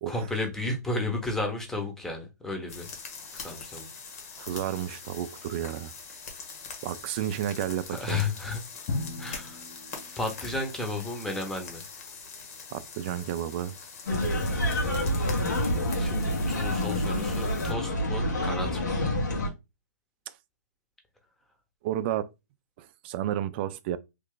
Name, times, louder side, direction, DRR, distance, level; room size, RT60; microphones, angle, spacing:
voice 1, 0.1-2.9 3.3-3.9 7.9-8.6 9.2-9.6 10.2-11.8 15.9-19.0, left 2 dB, 5° left, 0.8 m, -33 dB
sound 1, 2.7-17.7, left 5 dB, 55° left, 1.4 m, -43 dB
voice 2, 4.4-5.9 6.8-8.2 12.7-13.7 21.8-22.3 22.8-24.0, right 11 dB, 35° right, 0.4 m, -31 dB
Drum, 8.9-10.9, left 3 dB, 35° left, 0.9 m, -37 dB
sound 2, 14.1-19.5, left 1 dB, 85° left, 1.5 m, -27 dB
3.2 x 2.4 x 3.7 m
hypercardioid pair, 145°, 9 cm